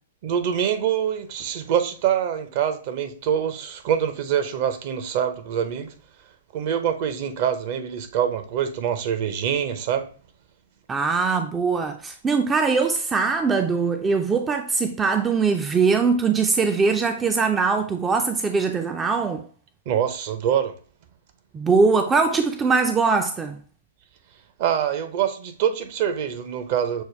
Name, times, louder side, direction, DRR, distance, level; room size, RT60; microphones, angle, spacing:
voice 1, 0.2-5.9 6.5-10.1 19.9-20.7 24.6-27.0, right 9 dB, 50° right, 0.7 m, -25 dB
voice 2, 10.9-19.5 21.5-23.6, right 4 dB, 15° right, 0.4 m, -21 dB
6.3 x 2.2 x 3.2 m
hypercardioid pair, 115°, 0 cm